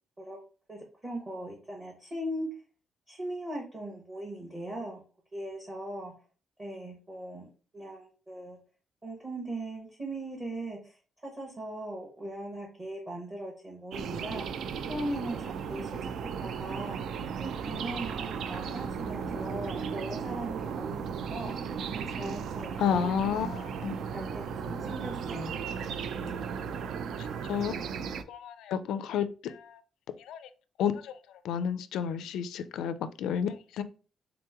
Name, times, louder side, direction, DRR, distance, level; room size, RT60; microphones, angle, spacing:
voice 1, 0.7-2.5 3.1-5.0 5.3-6.1 6.6-7.5 7.7-8.6 9.0-14.6 14.9-16.1 16.4-17.0 17.4-23.1 23.5-23.7 24.1-25.5, right 1 dB, 15° right, 0.8 m, -39 dB
sound 1, 13.9-28.2, right 6 dB, 60° right, 0.3 m, -36 dB
voice 2, 22.8-24.0 27.5-27.8 28.3-29.8 30.3-30.4 30.8-31.1 31.4-33.8, left 8 dB, 85° left, 0.4 m, -31 dB
3.7 x 2.9 x 3.5 m
cardioid pair, 175°, 0 cm